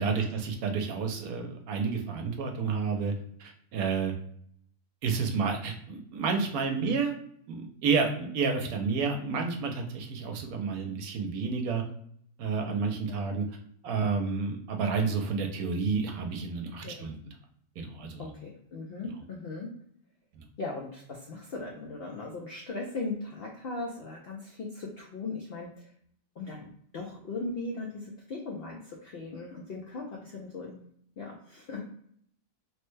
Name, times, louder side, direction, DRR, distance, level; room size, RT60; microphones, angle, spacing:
voice 1, 0.0-3.1 3.4-4.1 5.0-7.1 7.5-11.8 12.4-13.4 13.8-17.1 17.8-18.3 20.4-20.5, right 5 dB, 75° right, 4 dB, 1.0 m, -30 dB
voice 2, 18.2-19.7 20.6-25.8 26.4-26.7 26.9-30.8 31.2-31.8, left 3 dB, 75° left, -1 dB, 0.5 m, -38 dB
3.2 x 2.1 x 3.1 m, 0.66 s
omnidirectional pair, 1.6 m